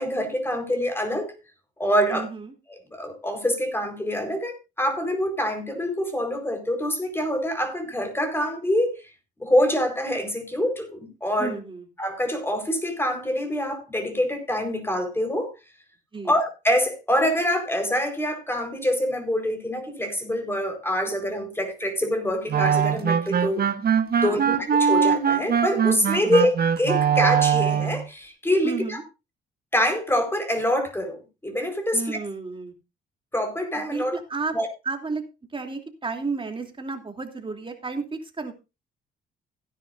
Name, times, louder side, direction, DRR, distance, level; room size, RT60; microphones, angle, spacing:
voice 1, 0.0-1.3 1.8-2.2 2.9-9.0 9.4-11.5 12.0-15.5 16.2-23.7 24.2-29.0 29.7-32.2 33.3-34.2 34.5-34.7, equal, 10° left, 4.4 m, -25 dB
voice 2, 2.1-2.5 11.4-11.9 16.1-16.4 24.2-24.6 28.6-29.0 31.9-32.7 33.7-34.5 34.8-35.2 35.5-38.5, right 4 dB, 25° right, 3.0 m, -32 dB
sound 1, 22.5-28.0, right 7 dB, 50° right, 1.4 m, -22 dB
16.5 x 10.5 x 2.6 m
cardioid pair, 90°, 20 cm